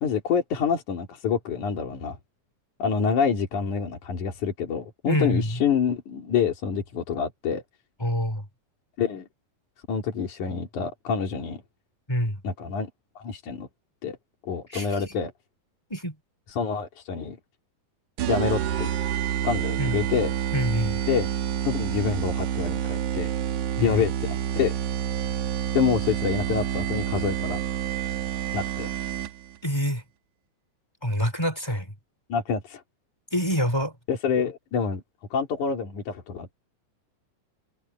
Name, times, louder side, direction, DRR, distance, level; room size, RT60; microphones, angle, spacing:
voice 1, 0.0-2.2 2.8-7.6 9.0-9.3 9.9-11.6 12.4-12.9 13.2-13.7 14.0-14.2 14.4-15.3 16.5-17.4 18.3-18.9 19.4-20.3 21.1-21.3 21.6-23.3 23.8-24.7 25.7-27.6 28.5-28.9 32.3-32.8 34.1-35.0 35.3-36.5, left 6 dB, 80° left, 4.5 m, -27 dB
voice 2, 5.1-5.6 8.0-8.4 12.1-12.4 14.7-14.9 15.9-16.1 19.8-20.0 20.5-21.0 23.8-24.0 29.6-30.0 31.0-31.9 33.3-33.9, equal, 10° left, 4.0 m, -26 dB
sound 1, 18.2-29.6, right 10 dB, 80° right, 2.7 m, -28 dB
omnidirectional pair, 3.5 m